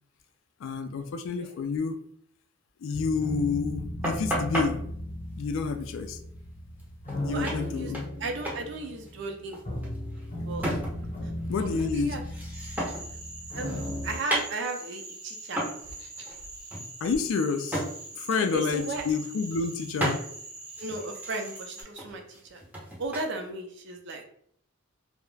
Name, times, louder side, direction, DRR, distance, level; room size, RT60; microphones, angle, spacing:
voice 1, 0.6-2.0 2.8-4.8 5.4-6.2 7.1-8.1 11.5-12.3 17.0-17.8 18.1-20.3, left 5 dB, 65° left, 8 dB, 0.3 m, -29 dB
sound 1, 2.9-14.2, left 1 dB, 35° left, 0.8 m, -36 dB
sound 2, 4.0-4.7 6.8-6.9 7.1-7.2 7.4-8.2 8.4-8.6 8.9-11.2 11.5-13.2 13.5-15.0 15.6-15.8 16.2-16.4 16.7-17.9 18.3-18.5 18.8-19.4 20.0-20.2 20.7-23.3, right 1 dB, 10° right, 0.6 m, -33 dB
voice 2, 7.2-7.9 8.2-9.8 10.5-10.7 11.6-12.2 13.5-15.6 16.0-16.4 18.5-19.0 20.8-22.6 23.0-24.2, right 3 dB, 60° right, 3 dB, 0.4 m, -36 dB
Cricket / Frog, 12.5-21.8, right 2 dB, 90° right, 0.8 m, -43 dB
2.3 x 2.0 x 3.2 m, 0.65 s
head